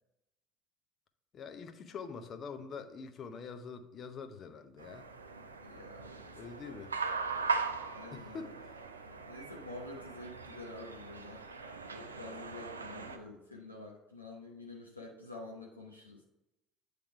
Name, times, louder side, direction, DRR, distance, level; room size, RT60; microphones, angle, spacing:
voice 1, 1.3-5.1 6.4-7.0 8.1-8.6, left 5 dB, 40° left, 7 dB, 0.7 m, -45 dB
sound 1, 4.8-13.2, right 4 dB, 80° right, 0.4 m, -40 dB
voice 2, 5.6-6.8 7.9-8.5 9.1-11.4 11.9-16.2, left 2 dB, 90° left, -2 dB, 0.8 m, -48 dB
8.5 x 3.4 x 4.5 m, 0.92 s
figure-of-eight pair, 60°, 0 cm